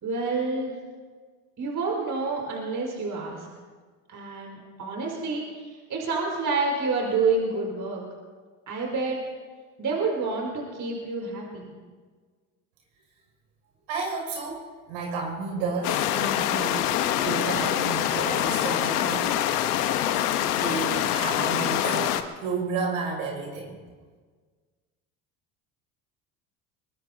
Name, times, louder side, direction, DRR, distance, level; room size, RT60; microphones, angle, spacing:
voice 1, 0.0-0.7 1.6-3.5 4.1-8.0 8.7-9.2 9.8-11.7, right 3 dB, 45° right, -1 dB, 5.1 m, -28 dB
voice 2, 13.9-16.9 17.2-19.4 20.5-23.8, right 4 dB, 75° right, -1 dB, 6.3 m, -32 dB
sound 1, 15.8-22.2, left 11 dB, 85° left, 1.1 m, -25 dB
24.0 x 21.0 x 2.8 m, 1.5 s
hypercardioid pair, 75°, 44 cm